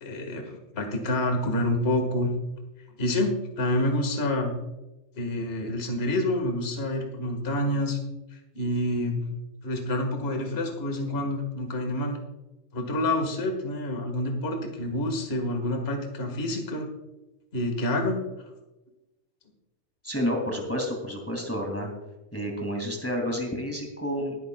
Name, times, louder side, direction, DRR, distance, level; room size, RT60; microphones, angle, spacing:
voice 1, 0.0-2.3 3.0-4.5 5.2-8.0 8.5-9.3 9.6-12.2 12.7-16.9 17.5-18.5, left 1 dB, 50° left, 3 dB, 0.7 m, -28 dB
voice 2, 20.0-21.9 22.3-24.4, equal, 5° left, 1 dB, 1.6 m, -30 dB
20.0 x 10.5 x 2.4 m, 1.0 s
omnidirectional pair, 4.2 m